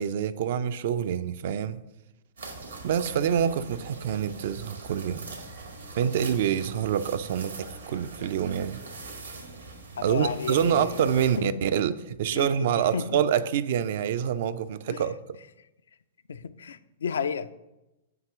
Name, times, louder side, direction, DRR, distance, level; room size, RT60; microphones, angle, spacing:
voice 1, 0.0-1.8 2.8-5.3 6.0-8.8 10.0-15.4, right 8 dB, 55° right, 0.4 m, -26 dB
sound 1, 2.4-11.4, right 3 dB, 85° right, 1.6 m, -42 dB
voice 2, 10.0-11.6 12.3-13.2 14.9-15.0 16.3-17.5, left 6 dB, 70° left, 0.3 m, -33 dB
7.2 x 3.0 x 6.0 m
figure-of-eight pair, 110°, 0 cm